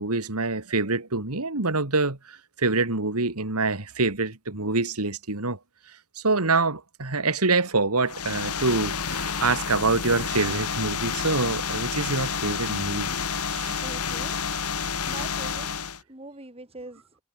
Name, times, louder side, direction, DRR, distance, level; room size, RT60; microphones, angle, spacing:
voice 1, 0.0-5.6 5.9-13.1 13.5-13.8, right 3 dB, 85° right, 2.7 m, -26 dB
sound 1, 8.1-16.0, left 6 dB, 90° left, 3.1 m, -29 dB
voice 2, 13.6-14.6 15.1-15.7 16.1-17.0, right 2 dB, 25° right, 6.3 m, -42 dB
head